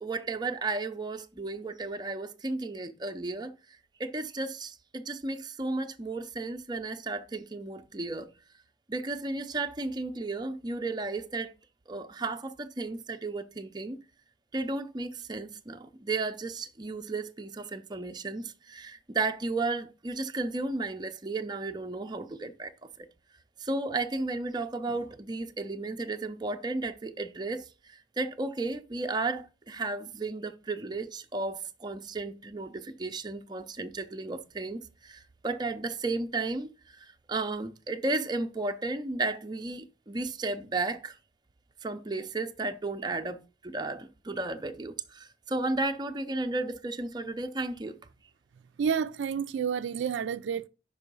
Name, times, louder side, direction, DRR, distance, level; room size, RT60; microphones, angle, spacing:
voice 1, 0.0-8.3 8.9-11.5 11.9-14.0 14.5-23.1 23.6-41.2 41.8-48.0, right 3 dB, 20° right, 0.5 m, -34 dB
voice 2, 48.8-50.7, right 7 dB, 80° right, 0.3 m, -30 dB
5.4 x 4.9 x 5.3 m
head